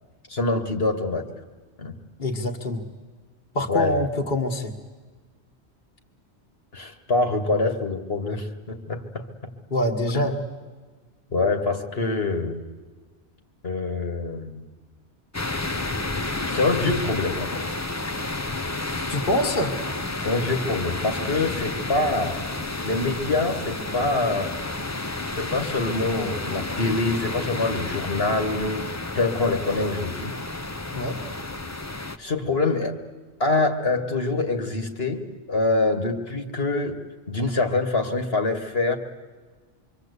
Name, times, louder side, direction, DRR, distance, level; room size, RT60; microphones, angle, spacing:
voice 1, 0.3-1.3 1.8-2.0 3.7-3.9 6.7-9.2 10.1-10.4 11.3-12.6 13.6-14.6 16.5-17.6 20.2-22.4 22.8-24.5 25.3-30.3 32.2-33.0 33.4-37.0 37.3-39.0, left 3 dB, 65° left, 5 dB, 2.0 m, -25 dB
voice 2, 2.2-2.8 3.5-4.7 9.7-10.3 19.1-19.8 30.9-31.2, left 1 dB, 45° left, 1 dB, 1.7 m, -25 dB
sound 1, 15.3-32.2, left 2 dB, 15° left, 0.7 m, -31 dB
25.5 x 24.0 x 8.2 m, 1.4 s
omnidirectional pair, 1.1 m